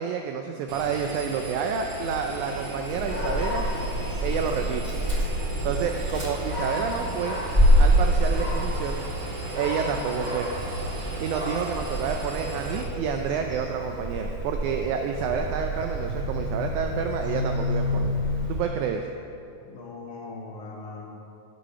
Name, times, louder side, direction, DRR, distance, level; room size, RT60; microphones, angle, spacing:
voice 1, 0.0-3.7 4.2-4.8 5.6-7.4 7.8-9.0 9.6-10.5 11.2-18.1 18.5-19.0, right 7 dB, 80° right, 4 dB, 1.9 m, -29 dB
Engine, 0.7-12.8, right 2 dB, 50° right, 2.1 m, -36 dB
Dog, 2.9-18.6, equal, 25° right, 1.0 m, -27 dB
voice 2, 19.6-21.1, left 3 dB, 70° left, -3 dB, 3.0 m, -40 dB
14.5 x 5.4 x 5.6 m, 2.5 s
omnidirectional pair, 3.7 m